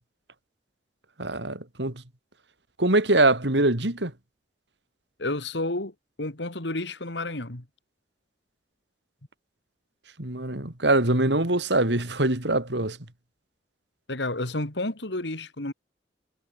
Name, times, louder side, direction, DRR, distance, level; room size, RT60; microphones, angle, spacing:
voice 1, 1.2-1.9 2.8-4.1 10.2-13.0, right 2 dB, 75° right, 3.4 m, -23 dB
voice 2, 5.2-5.9 6.2-7.6 14.1-15.7, left 2 dB, 75° left, 2.7 m, -30 dB
head